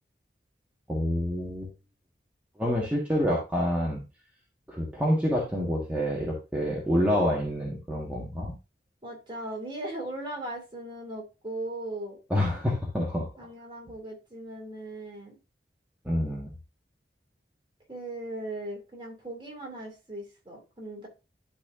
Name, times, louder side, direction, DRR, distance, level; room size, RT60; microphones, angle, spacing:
voice 1, 0.9-1.7 2.6-4.0 4.7-8.5 12.3-13.3 16.0-16.5, equal, 10° right, -4 dB, 1.6 m, -27 dB
voice 2, 9.0-12.2 13.4-15.3 17.9-21.1, right 1 dB, 25° right, -1 dB, 2.8 m, -38 dB
12.0 x 4.3 x 2.6 m, 0.29 s
head